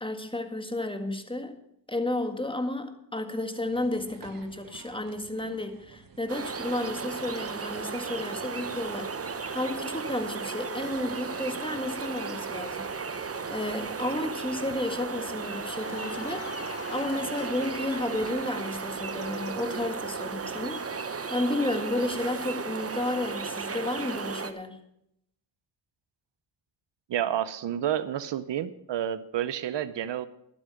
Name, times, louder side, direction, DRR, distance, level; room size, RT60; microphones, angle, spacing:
voice 1, 0.0-1.6 1.9-24.8, left 1 dB, 10° left, 7 dB, 1.7 m, -32 dB
sound 1, 3.6-20.8, right 5 dB, 50° right, 1.5 m, -52 dB
sound 2, 6.3-24.5, right 5 dB, 30° right, 1.0 m, -35 dB
Cheering / Applause, 13.3-18.7, left 5 dB, 30° left, 0.9 m, -45 dB
voice 2, 27.1-30.3, right 10 dB, 70° right, 15 dB, 0.7 m, -30 dB
12.0 x 8.6 x 6.4 m, 0.77 s
cardioid pair, 60°, 45 cm